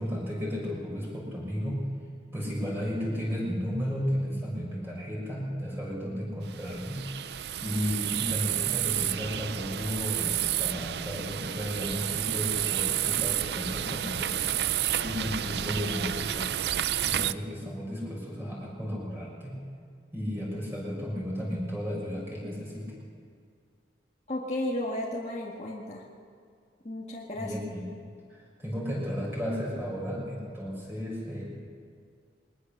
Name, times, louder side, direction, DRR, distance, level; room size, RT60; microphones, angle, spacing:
voice 1, 0.0-1.9 2.3-7.0 7.6-14.5 15.0-16.5 17.0-19.6 20.1-22.9 27.4-28.0 28.3-31.4, equal, 10° right, -4 dB, 5.7 m, -33 dB
sound 1, 6.5-17.3, right 11 dB, 65° right, 0.5 m, -30 dB
voice 2, 24.3-26.0 26.8-27.5, left 1 dB, 35° left, -3 dB, 1.9 m, -33 dB
21.5 x 20.0 x 6.7 m, 2.2 s
head